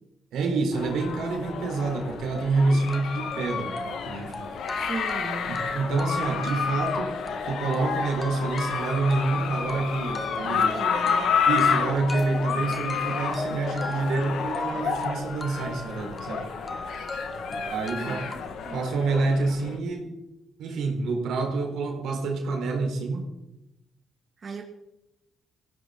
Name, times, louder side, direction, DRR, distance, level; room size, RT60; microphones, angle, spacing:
voice 1, 0.3-4.4 5.5-7.2 7.5-10.7 11.5-16.5 17.7-18.2 18.7-20.2 20.6-23.3, right 3 dB, 80° right, 2 dB, 4.2 m, -27 dB
sound 1, 0.7-19.8, left 6 dB, 75° left, 1.9 m, -30 dB
sound 2, 2.4-2.5 2.9-18.4, left 2 dB, 20° left, 1.4 m, -38 dB
voice 2, 4.8-5.6 10.4-11.3 17.9-18.8 24.4-24.6, right 4 dB, 45° right, 1 dB, 2.4 m, -37 dB
20.5 x 16.0 x 4.1 m, 0.94 s
cardioid pair, 90°, 0 cm